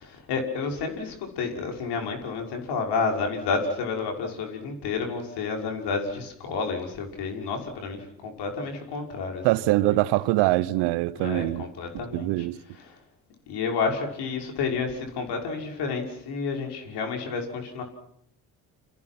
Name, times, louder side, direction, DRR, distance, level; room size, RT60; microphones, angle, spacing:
voice 1, 0.0-9.4 9.8-10.0 11.2-12.5 12.8-13.0 13.5-17.8, left 4 dB, 65° left, 6.0 m, -30 dB
voice 2, 9.4-11.7 12.1-12.6, right 18 dB, 70° right, 1.0 m, -23 dB
29.0 x 26.5 x 6.1 m
hypercardioid pair, 60°, 42 cm